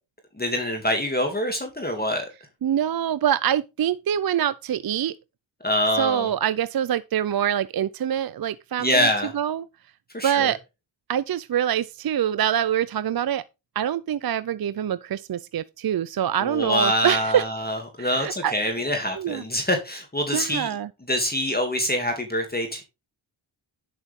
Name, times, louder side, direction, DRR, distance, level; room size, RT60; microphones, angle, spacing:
voice 1, 0.4-2.3 5.6-6.3 8.8-9.3 10.1-10.5 16.4-20.7 21.1-22.8, equal, 20° left, 2.6 m, -25 dB
voice 2, 2.6-5.1 6.0-9.1 9.3-9.6 10.2-10.6 11.1-13.4 13.8-17.4 18.0-18.5 19.2-19.4 20.3-20.9, right 10 dB, 50° right, 0.5 m, -25 dB
11.0 x 6.8 x 3.6 m
cardioid pair, 60°, 47 cm